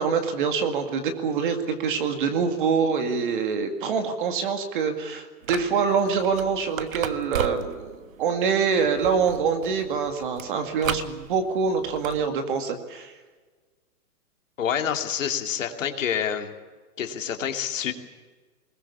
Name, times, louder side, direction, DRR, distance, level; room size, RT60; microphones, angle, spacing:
voice 1, 0.0-13.1, right 6 dB, 35° right, 6 dB, 2.2 m, -25 dB
sound 1, 5.4-12.3, right 8 dB, 55° right, 1.4 m, -36 dB
voice 2, 14.6-16.5 17.0-17.9, left 8 dB, 55° left, 5 dB, 2.6 m, -27 dB
22.0 x 19.5 x 8.5 m, 1.4 s
hypercardioid pair, 170°, 47 cm